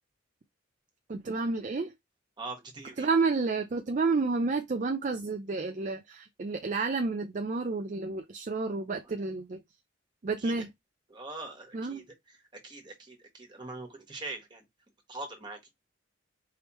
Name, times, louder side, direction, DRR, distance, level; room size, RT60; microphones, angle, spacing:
voice 1, 1.1-1.9 3.0-9.6 10.2-10.7 11.7-12.0, right 4 dB, 40° right, 0.4 m, -30 dB
voice 2, 2.4-3.1 9.0-9.1 10.4-10.7 11.1-14.6 15.1-15.6, right 2 dB, 25° right, 1.5 m, -43 dB
4.7 x 3.4 x 3.1 m
head